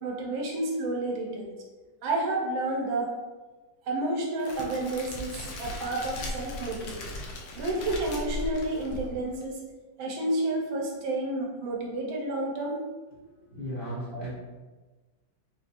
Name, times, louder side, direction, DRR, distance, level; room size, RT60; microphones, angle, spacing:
voice 1, 0.0-1.5 2.0-3.1 3.8-7.2 7.6-9.6 10.0-12.8 14.1-14.2, right 2 dB, 90° right, -1 dB, 1.6 m, -30 dB
Crackle, 4.4-9.4, left 1 dB, 65° left, 1.0 m, -38 dB
voice 2, 13.2-14.3, equal, 40° left, -9 dB, 0.9 m, -37 dB
5.1 x 2.8 x 2.5 m, 1.3 s
omnidirectional pair, 2.1 m